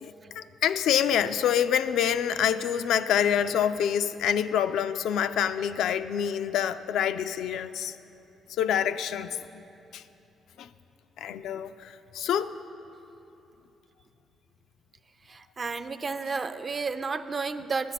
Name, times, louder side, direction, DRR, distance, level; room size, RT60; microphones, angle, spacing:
voice 1, 0.0-8.0 8.6-9.6 9.9-10.0 10.6-10.7 11.2-12.5, left 9 dB, 80° left, 11 dB, 0.3 m, -26 dB
voice 2, 15.3-17.9, right 4 dB, 35° right, 10 dB, 0.4 m, -32 dB
10.0 x 8.3 x 5.8 m, 2.9 s
cardioid pair, 90°, 0 cm